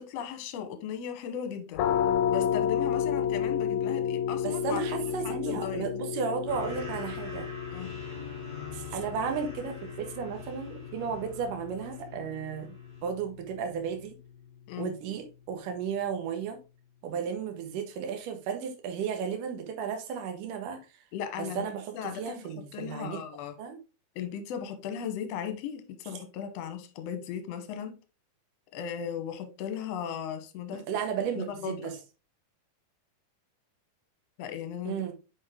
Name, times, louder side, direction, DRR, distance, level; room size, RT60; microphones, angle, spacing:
voice 1, 0.0-1.9 2.3-5.9 7.7-8.0 14.7-14.9 21.1-21.7 21.9-22.4 22.7-23.5 24.1-27.9 28.7-30.8 31.3-31.9 34.4-35.0, left 8 dB, 65° left, 1.7 m, -37 dB
sound 1, 1.7-13.3, left 8 dB, 80° left, 1.6 m, -32 dB
voice 2, 4.4-7.5 8.7-12.7 13.0-14.2 14.8-16.6 17.0-20.8 21.4-23.2 23.6-23.8 30.9-31.9 34.8-35.1, right 6 dB, 75° right, 2.7 m, -34 dB
sound 2, 6.5-12.2 12.6-13.0, left 2 dB, 20° right, 2.7 m, -46 dB
6.3 x 5.6 x 3.5 m
omnidirectional pair, 3.9 m